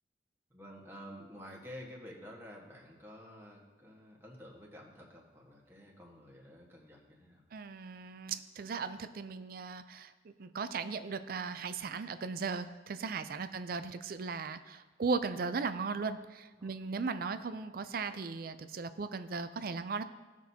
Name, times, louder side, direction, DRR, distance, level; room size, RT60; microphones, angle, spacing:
voice 1, 0.5-7.4 13.3-13.6 16.6-16.9, equal, 15° right, -3 dB, 1.4 m, -51 dB
voice 2, 7.5-20.0, right 4 dB, 50° right, 11 dB, 0.4 m, -37 dB
17.0 x 6.1 x 2.8 m, 1.2 s
head